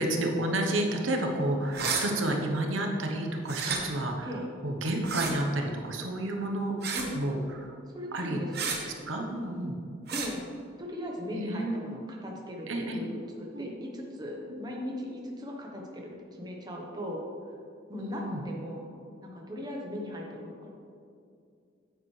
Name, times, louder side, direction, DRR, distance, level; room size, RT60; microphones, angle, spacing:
voice 1, 0.0-4.3 4.6-6.8 7.1-7.7 8.1-8.4 8.8-9.8 11.3-11.8 12.7-13.0 13.5-13.8 14.5-14.7 18.0-18.4, right 1 dB, 85° right, 2 dB, 1.0 m, -30 dB
sound 1, 1.7-2.1 3.5-3.8 5.0-5.3 6.8-7.1 8.5-8.8 10.1-10.3, right 5 dB, 55° right, 1.1 m, -31 dB
voice 2, 7.9-8.8 10.1-10.4 10.8-17.2 17.9-18.9 19.2-20.7, left 1 dB, 20° right, -1 dB, 1.1 m, -38 dB
9.1 x 8.7 x 3.3 m, 2.4 s
head